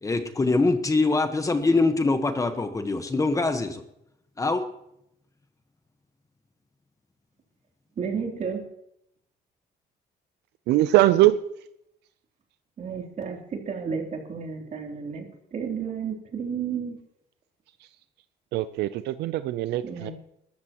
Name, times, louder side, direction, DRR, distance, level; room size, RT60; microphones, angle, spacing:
voice 1, 0.0-3.8 4.4-4.6, left 3 dB, 20° left, 8 dB, 1.2 m, -23 dB
voice 2, 8.0-8.6 12.8-15.2 15.5-17.0 19.8-20.1, right 6 dB, 45° right, 2 dB, 3.2 m, -32 dB
voice 3, 10.7-11.4 18.5-20.1, right 15 dB, 80° right, 13 dB, 0.6 m, -21 dB
21.0 x 13.5 x 3.0 m, 0.77 s
cardioid pair, 110°, 17 cm